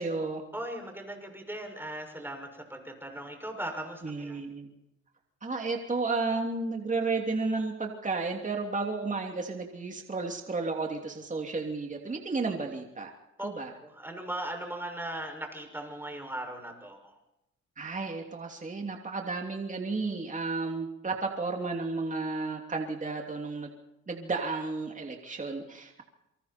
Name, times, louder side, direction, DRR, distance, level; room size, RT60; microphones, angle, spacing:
voice 1, 0.0-0.4 4.0-4.7 5.4-13.1 13.4-13.7 17.8-23.7 24.1-26.0, right 3 dB, 25° right, 2 dB, 3.0 m, -32 dB
voice 2, 0.5-4.4 13.4-13.5 13.8-17.2, right 1 dB, 5° right, 3 dB, 6.4 m, -38 dB
27.0 x 24.0 x 4.5 m, 0.90 s
cardioid pair, 90°, 30 cm